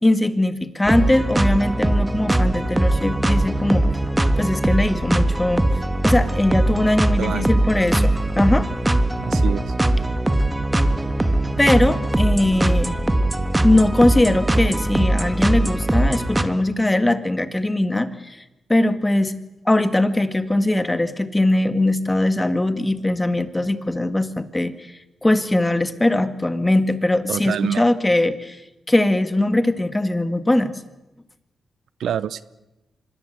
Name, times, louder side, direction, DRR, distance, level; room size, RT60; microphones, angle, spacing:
voice 1, 0.0-3.9 4.4-5.7 6.0-8.7 11.6-13.0 13.6-18.4 18.7-19.4 19.7-24.9 25.2-28.6 28.9-30.7, left 1 dB, 15° left, 11 dB, 1.8 m, -20 dB
sound 1, 0.9-16.4, right 1 dB, 15° right, 1.7 m, -20 dB
voice 2, 7.2-7.6 9.2-9.7 27.3-27.8 32.0-32.4, right 9 dB, 85° right, 17 dB, 0.8 m, -26 dB
25.5 x 21.5 x 8.0 m, 0.99 s
cardioid pair, 95°, 0 cm